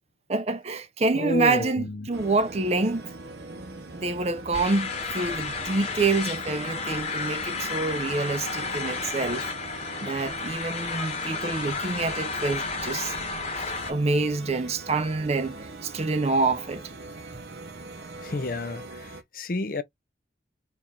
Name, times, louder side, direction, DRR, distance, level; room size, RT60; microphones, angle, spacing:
voice 1, 0.3-3.1 3.9-9.5 10.0-13.2 13.6-16.9, right 3 dB, 35° right, 0.5 m, -27 dB
voice 2, 1.1-2.1 18.2-19.8, left 2 dB, 50° left, 0.6 m, -30 dB
sound 1, 2.1-19.2, right 2 dB, 65° right, 0.9 m, -42 dB
sound 2, 4.5-13.9, left 4 dB, 35° left, 1.6 m, -32 dB
4.5 x 2.6 x 3.4 m
head